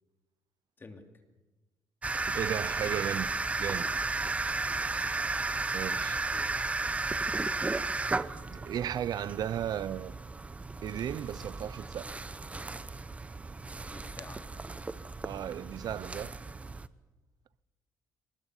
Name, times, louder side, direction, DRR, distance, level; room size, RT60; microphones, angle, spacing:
sound 1, 2.0-16.9, right 3 dB, 15° right, 0.9 m, -34 dB
voice 1, 2.1-3.3 3.6-3.9 5.7-6.2 8.5-10.1 10.8-12.2 15.2-16.3, right 10 dB, 60° right, 0.7 m, -35 dB
voice 2, 5.4-6.0 6.3-6.5 13.9-14.4, left 3 dB, 25° left, 3.1 m, -51 dB
24.5 x 19.5 x 8.4 m
cardioid pair, 110°, 8 cm